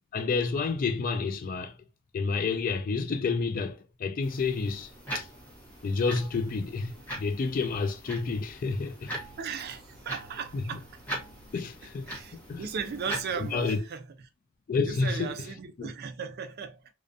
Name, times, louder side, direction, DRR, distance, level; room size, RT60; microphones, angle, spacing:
voice 1, 0.1-1.7 2.1-4.9 5.1-5.3 5.8-9.2 11.5-12.6 13.5-13.8 14.7-15.3 15.8-15.9, left 4 dB, 45° left, 0.3 m, -29 dB
sound 1, 4.2-13.8, right 1 dB, 10° left, 0.9 m, -42 dB
voice 2, 9.4-11.0 12.1-14.1 14.8-16.8, right 6 dB, 50° right, 0.4 m, -36 dB
2.5 x 2.2 x 2.5 m
head